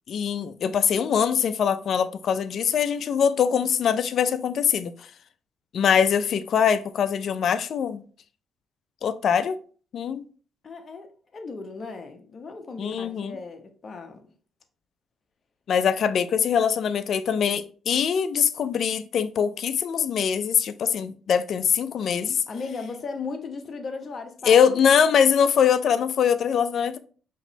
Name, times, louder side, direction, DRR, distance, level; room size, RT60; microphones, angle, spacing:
voice 1, 0.1-4.9 5.7-8.0 9.0-9.6 9.9-10.2 12.8-13.3 15.7-22.4 24.4-27.0, left 7 dB, 60° left, 0.4 m, -22 dB
voice 2, 10.6-14.3 22.5-24.9, left 4 dB, 40° left, 0.9 m, -37 dB
5.1 x 3.0 x 2.7 m
cardioid pair, 90°, 0 cm